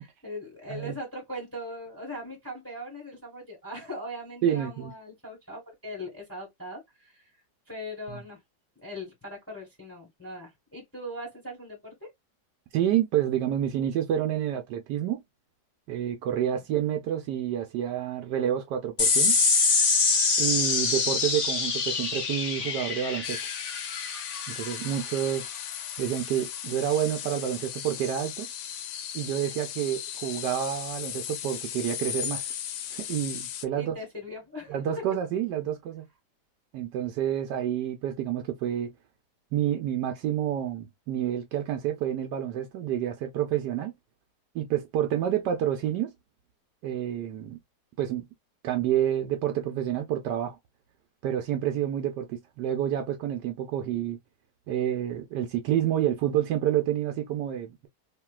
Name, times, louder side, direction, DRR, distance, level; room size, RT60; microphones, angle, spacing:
voice 1, 0.2-7.4 7.7-8.4 8.8-12.1 16.6-17.0 33.7-34.8, left 1 dB, 10° left, 1.6 m, -40 dB
voice 2, 4.4-4.9 8.1-8.2 12.7-15.2 15.9-19.3 20.4-23.4 24.5-25.5 26.0-28.5 29.1-32.4 32.9-34.0 34.7-36.1 36.7-38.9 39.5-43.9 44.5-46.1 46.8-47.6 48.0-48.2 48.6-50.6 51.2-54.2 54.7-57.9, right 10 dB, 85° right, 1.3 m, -28 dB
sound 1, 19.0-25.8, left 4 dB, 50° left, 1.3 m, -25 dB
sound 2, 23.2-33.6, left 10 dB, 80° left, 1.1 m, -37 dB
3.1 x 2.9 x 2.2 m
omnidirectional pair, 1.8 m